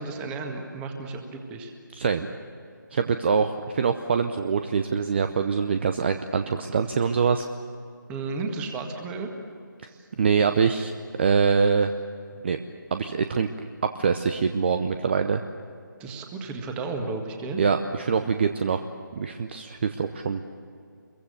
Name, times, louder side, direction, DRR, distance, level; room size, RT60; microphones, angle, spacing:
voice 1, 0.0-1.7 8.1-9.3 9.9-10.1 12.4-12.5 16.0-17.6, right 3 dB, 10° right, 4 dB, 1.8 m, -33 dB
voice 2, 2.0-2.3 2.9-7.4 10.2-10.9 11.2-11.9 12.4-12.6 12.9-13.5 14.0-15.4 17.6-18.8 19.2-20.4, right 6 dB, 30° right, 8 dB, 0.8 m, -24 dB
26.5 x 22.5 x 6.7 m, 2.4 s
figure-of-eight pair, 150°, 11 cm